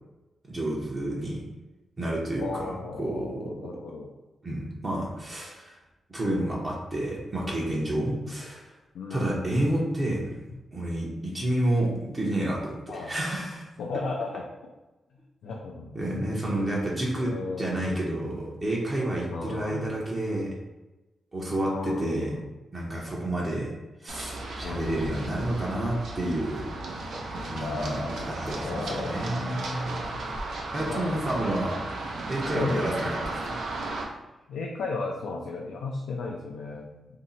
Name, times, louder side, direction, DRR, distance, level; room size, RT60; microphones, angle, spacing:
voice 1, 0.5-1.4 2.0-3.6 4.4-5.8 6.1-8.7 9.1-10.4 10.7-13.7 15.9-17.3 17.6-20.5 21.3-22.3 22.7-23.7 24.0-26.7 27.4-30.0 30.7-31.8 32.3-33.6, right 1 dB, 35° right, -4 dB, 0.7 m, -30 dB
voice 2, 2.4-4.1 8.0-8.3 8.9-9.5 12.9-13.1 13.8-14.7 15.4-15.9 17.1-17.9 19.3-19.9 21.6-22.5 24.6-25.3 27.5-30.3 30.8-31.1 32.5-33.0 34.5-36.9, left 3 dB, 90° left, -1 dB, 0.3 m, -35 dB
Run, 24.1-34.0, right 2 dB, 75° right, 0.5 m, -35 dB
2.6 x 2.0 x 3.8 m, 1.1 s
cardioid pair, 85°, 0 cm